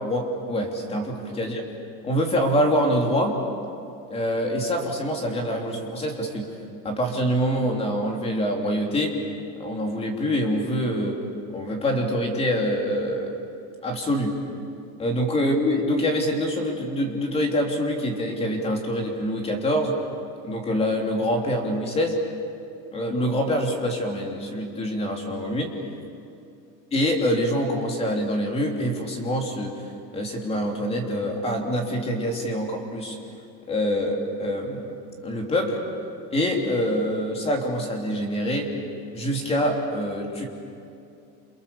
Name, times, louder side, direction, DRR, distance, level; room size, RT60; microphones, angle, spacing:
voice 1, 0.0-1.6 2.0-3.4 4.1-6.5 6.8-9.2 9.6-11.2 11.5-13.3 13.8-14.3 15.0-19.9 20.4-22.2 22.9-25.7 26.9-29.8 30.1-33.2 33.7-34.9 35.2-35.8 36.3-38.7 39.1-40.5, equal, 20° left, 1 dB, 3.2 m, -25 dB
29.5 x 29.0 x 7.0 m, 2.6 s
cardioid pair, 175°, 33 cm